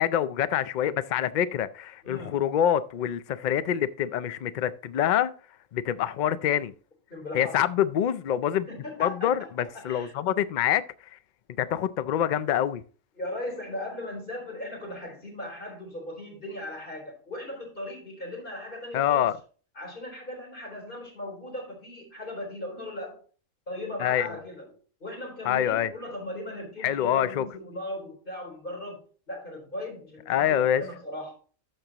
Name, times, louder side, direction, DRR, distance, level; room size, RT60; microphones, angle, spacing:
voice 1, 0.0-5.3 5.7-6.7 7.3-8.7 9.0-10.8 11.1-11.2 11.6-12.8 18.9-19.3 24.0-24.3 25.5-25.9 26.8-27.4 30.3-30.8, left 10 dB, 85° left, 0.4 m, -26 dB
voice 2, 2.0-2.4 7.1-7.6 8.7-10.1 13.1-19.3 19.8-23.2 23.7-24.7 25.0-31.4, left 1 dB, 40° left, 3.9 m, -38 dB
13.5 x 6.0 x 2.8 m
omnidirectional pair, 1.4 m